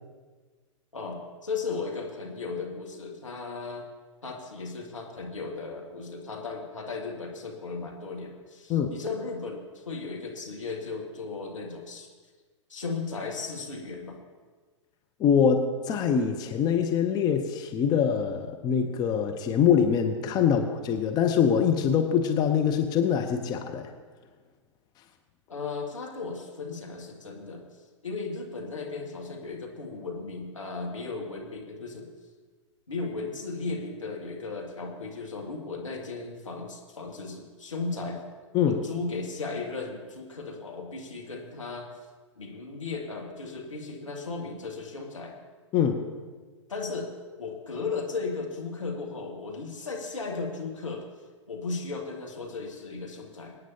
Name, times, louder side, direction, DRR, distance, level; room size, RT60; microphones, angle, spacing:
voice 1, 0.9-3.8 4.2-12.1 12.7-14.2 20.5-20.7 25.5-27.7 28.0-32.1 32.9-38.2 38.6-41.9 42.4-45.4 46.7-47.1 47.4-51.1 51.5-53.6, left 4 dB, 75° left, 0 dB, 2.1 m, -36 dB
voice 2, 15.2-23.9 38.5-38.8 45.7-46.0, left 7 dB, 25° left, 5 dB, 0.8 m, -24 dB
24.5 x 9.2 x 2.8 m, 1.4 s
figure-of-eight pair, 105°, 16 cm